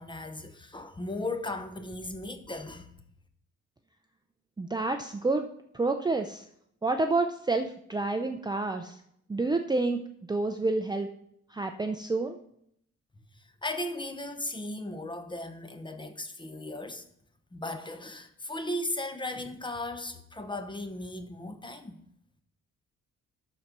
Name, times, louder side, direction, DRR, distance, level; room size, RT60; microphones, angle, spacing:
voice 1, 0.0-2.9 13.6-17.0 17.5-22.0, left 1 dB, 15° left, 0.9 m, -36 dB
voice 2, 4.6-5.5 5.7-6.4 6.8-9.0 9.3-10.0 10.3-11.1 11.5-12.4, right 3 dB, 15° right, 0.5 m, -28 dB
12.5 x 4.3 x 6.0 m
cardioid pair, 125°, 30 cm